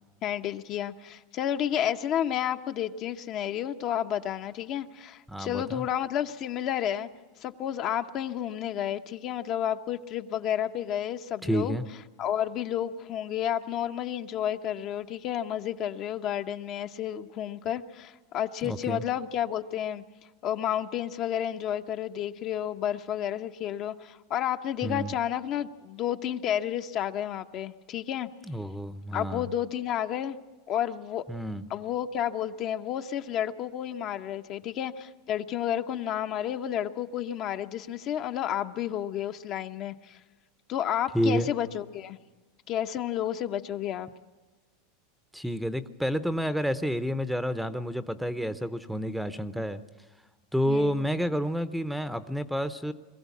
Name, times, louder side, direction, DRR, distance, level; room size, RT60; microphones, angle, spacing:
voice 1, 0.2-7.1 7.4-11.8 12.2-20.0 20.4-28.3 29.1-30.4 30.7-31.2 31.7-40.2 40.7-42.2 42.7-44.1 50.7-51.0, left 10 dB, 45° left, 7 dB, 0.9 m, -31 dB
voice 2, 5.3-5.8 11.4-11.8 18.6-19.0 24.8-25.1 28.4-29.5 31.3-31.6 41.1-41.5 45.3-49.8 50.5-52.9, equal, ahead, 13 dB, 0.8 m, -29 dB
22.0 x 15.0 x 8.4 m, 1.2 s
supercardioid pair, 120°, 0 cm